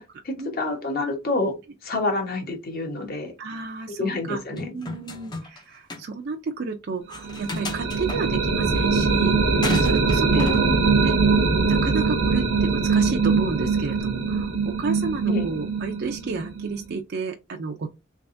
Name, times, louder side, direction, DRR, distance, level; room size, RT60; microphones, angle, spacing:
voice 1, 0.0-1.6 1.8-3.3 4.0-4.7 10.3-10.6 15.3-15.5, left 2 dB, 45° left, 1.1 m, -28 dB
voice 2, 3.4-4.4 4.7-11.2 11.7-17.9, right 4 dB, 50° right, 0.4 m, -31 dB
sound 1, 4.6-5.6 5.9-6.0 7.1-8.2 9.6-10.6, left 2 dB, 20° left, 0.5 m, -33 dB
sound 2, 7.2-17.0, right 4 dB, 75° right, 0.8 m, -22 dB
3.4 x 3.2 x 2.6 m
head